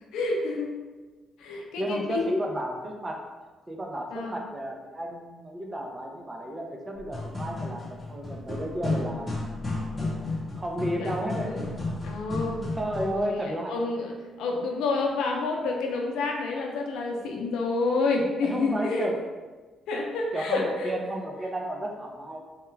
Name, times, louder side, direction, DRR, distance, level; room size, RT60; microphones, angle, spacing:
voice 1, 0.1-0.7 1.4-2.2 4.1-4.4 11.0-11.2 11.4-11.6 12.0-12.6 13.0-14.1 14.4-19.0 19.9-20.9, left 3 dB, 85° left, 0 dB, 0.5 m, -29 dB
voice 2, 1.5-3.2 3.7-9.4 10.6-11.6 12.8-14.0 18.4-19.1 20.3-22.4, equal, 25° right, 1 dB, 0.6 m, -32 dB
sound 1, 7.0-13.2, left 2 dB, 25° left, 0.9 m, -33 dB
3.5 x 2.2 x 3.1 m, 1.3 s
cardioid pair, 75°, 0 cm